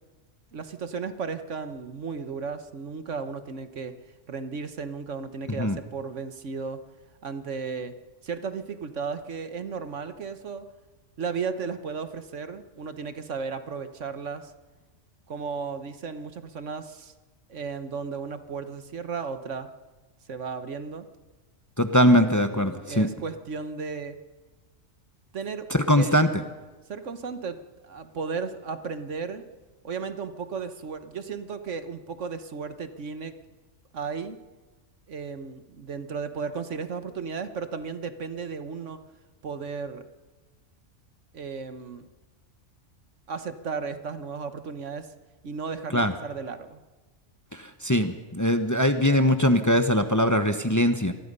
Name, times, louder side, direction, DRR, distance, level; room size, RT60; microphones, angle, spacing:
voice 1, 0.5-3.9 4.3-6.8 7.2-7.9 8.2-10.7 11.2-14.5 15.3-17.1 17.5-19.7 20.3-21.1 22.5-24.2 25.3-25.7 25.9-26.2 26.9-29.4 29.8-33.4 33.9-34.4 35.1-39.0 39.4-40.0 41.3-42.1 43.3-45.1 45.4-46.8, right 5 dB, 70° right, 9 dB, 1.5 m, -34 dB
voice 2, 21.8-23.1 25.7-26.4 45.9-46.1 47.5-51.1, equal, 15° left, 8 dB, 1.0 m, -21 dB
25.5 x 20.0 x 5.5 m, 1.2 s
omnidirectional pair, 1.3 m